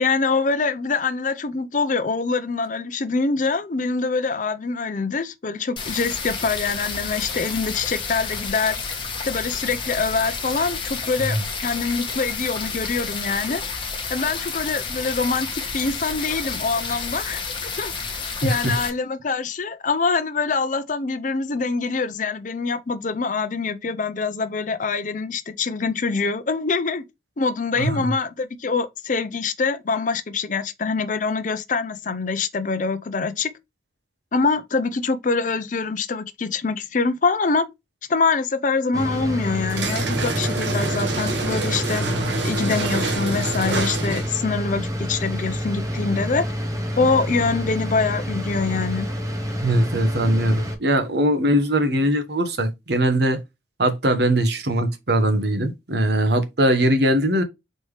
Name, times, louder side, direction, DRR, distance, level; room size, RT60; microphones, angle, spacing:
voice 1, 0.0-8.8 9.2-13.6 14.1-17.4 17.8-17.9 18.4-27.0 27.4-33.5 34.3-37.7 38.1-42.1 42.4-46.4 47.0-49.1 50.4-50.5, left 4 dB, 45° left, 0.5 m, -24 dB
sound 1, 5.8-18.9, left 5 dB, 25° left, 1.1 m, -30 dB
voice 2, 18.4-18.8 27.8-28.1 49.6-53.4 53.8-57.4, right 1 dB, 65° right, 1.0 m, -21 dB
sound 2, 38.9-50.7, equal, 20° right, 0.9 m, -28 dB
sound 3, 39.7-44.4, right 3 dB, 80° right, 1.2 m, -27 dB
4.2 x 3.4 x 3.1 m
head